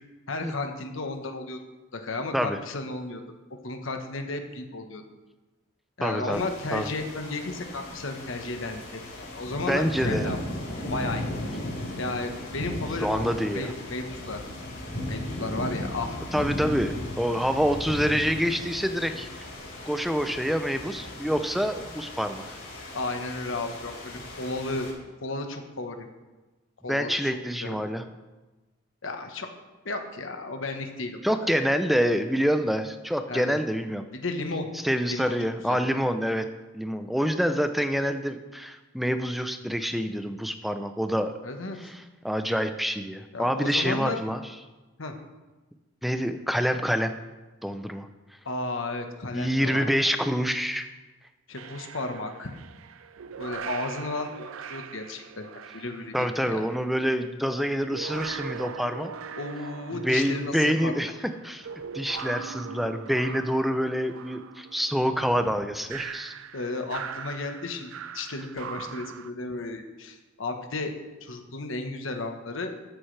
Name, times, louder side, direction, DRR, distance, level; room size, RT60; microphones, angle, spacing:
voice 1, 0.3-1.6 1.9-3.2 3.6-5.0 6.0-10.4 10.9-11.3 12.0-13.3 13.5-14.4 15.0-16.2 22.9-24.9 25.2-26.1 26.8-27.8 29.0-29.5 29.8-31.5 33.3-33.6 34.1-34.7 35.1-35.4 35.7-35.9 41.4-41.9 43.3-44.2 45.0-45.1 48.4-49.9 51.5-52.5 53.4-56.6 59.4-61.1 66.5-70.9 71.2-72.7, left 2 dB, 70° left, 5 dB, 1.3 m, -33 dB
voice 2, 6.0-6.4 6.7-6.9 9.7-10.3 13.0-13.7 16.3-19.3 19.9-22.4 26.9-28.0 31.2-34.0 34.8-36.5 36.7-41.3 41.8-44.4 46.0-47.1 47.6-48.1 49.3-50.9 56.1-59.1 60.0-61.1 61.4-61.7 61.9-66.3, equal, ahead, 8 dB, 0.5 m, -26 dB
sound 1, 6.3-24.9, left 1 dB, 55° left, 4.4 m, -36 dB
sound 2, 51.5-56.9 57.6-69.3, right 7 dB, 75° right, 0.4 m, -41 dB
13.0 x 10.0 x 3.4 m, 1.2 s
head